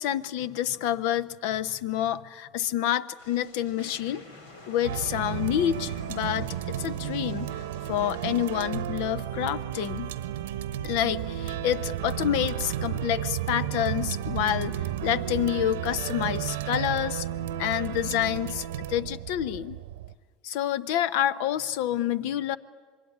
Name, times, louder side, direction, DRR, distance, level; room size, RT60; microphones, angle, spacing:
voice 1, 0.0-4.2 4.7-10.1 10.8-17.3 17.6-19.8 20.4-22.6, left 11 dB, 70° left, 17 dB, 0.8 m, -28 dB
sound 1, 3.2-8.7, left 2 dB, 85° left, 2.9 m, -48 dB
sound 2, 4.8-20.1, right 11 dB, 80° right, 0.9 m, -33 dB
26.0 x 21.5 x 10.0 m, 1.6 s
hypercardioid pair, 80°, 0 cm